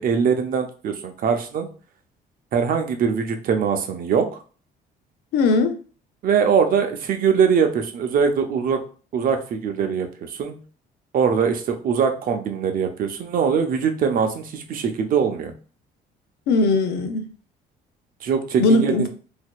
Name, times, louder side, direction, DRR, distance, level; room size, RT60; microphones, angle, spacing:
voice 1, 0.0-1.7 2.5-4.3 6.2-8.8 9.1-10.6 11.1-15.5 18.2-19.1, right 6 dB, 55° right, 0.7 m, -22 dB
voice 2, 5.3-5.8 16.5-17.3 18.6-19.1, left 3 dB, 75° left, 0.6 m, -19 dB
4.2 x 2.7 x 2.3 m
cardioid pair, 110°, 17 cm